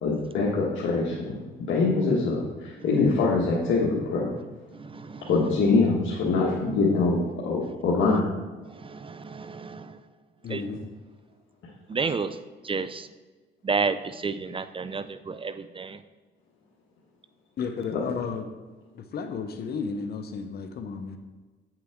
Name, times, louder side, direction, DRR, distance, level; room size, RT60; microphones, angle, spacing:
voice 1, 0.0-1.4 1.7-4.3 5.3-8.3 17.9-18.0, left 3 dB, 75° left, -5 dB, 1.5 m, -24 dB
voice 2, 4.7-5.3 8.6-10.0 10.5-10.6 11.9-13.1 13.6-16.0, right 5 dB, 25° right, 12 dB, 0.4 m, -31 dB
voice 3, 10.4-10.9 17.6-18.5 18.9-21.2, left 5 dB, 55° left, 6 dB, 0.8 m, -33 dB
8.8 x 7.5 x 3.6 m, 1.3 s
cardioid pair, 90°, 20 cm